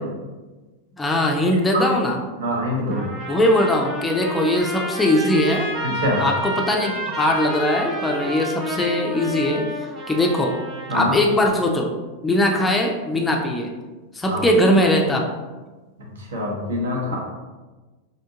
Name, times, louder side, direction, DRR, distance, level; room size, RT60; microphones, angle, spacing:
voice 1, 1.0-2.2 3.3-5.7 6.1-9.7 10.1-10.6 10.9-11.9 12.2-13.7 14.1-15.2 17.1-17.2, left 1 dB, 10° left, 1 dB, 0.4 m, -20 dB
voice 2, 2.4-3.0 5.8-6.3 10.9-11.1 14.3-14.4 16.3-17.2, equal, 65° right, -2 dB, 0.8 m, -24 dB
Trumpet, 2.9-11.1, right 1 dB, 30° right, 0.9 m, -30 dB
3.4 x 2.7 x 2.7 m, 1.2 s
figure-of-eight pair, 90°, 0 cm